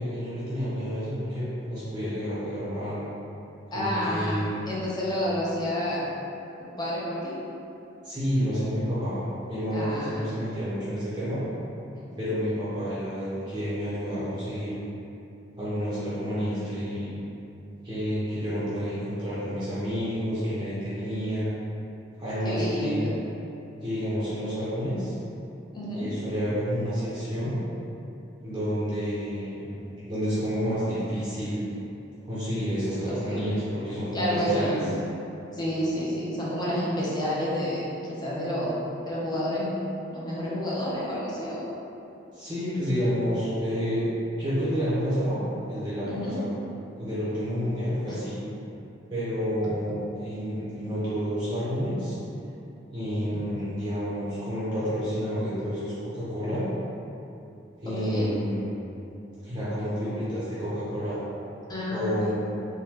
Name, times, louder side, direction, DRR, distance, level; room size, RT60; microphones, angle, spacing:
voice 1, 0.0-3.0 3.7-4.7 8.0-9.2 9.5-11.4 12.2-14.7 15.6-17.1 17.8-21.5 22.2-23.1 23.8-25.1 25.9-27.6 28.4-29.8 30.1-31.6 32.2-34.8 42.3-44.0 44.4-45.4 45.7-46.5 47.0-48.4 49.1-52.2 52.9-56.6 57.8-58.6 59.4-61.2 61.9-62.3, equal, 25° right, -12 dB, 0.6 m, -29 dB
voice 2, 3.7-6.1 6.8-7.3 9.7-10.2 22.4-23.2 25.7-26.1 33.1-33.4 34.1-34.9 35.5-38.8 39.0-39.7 40.1-41.7 46.1-46.4 48.1-48.2 57.9-58.3 61.7-62.2, equal, 25° left, -7 dB, 0.6 m, -29 dB
3.4 x 2.2 x 2.9 m, 2.8 s
head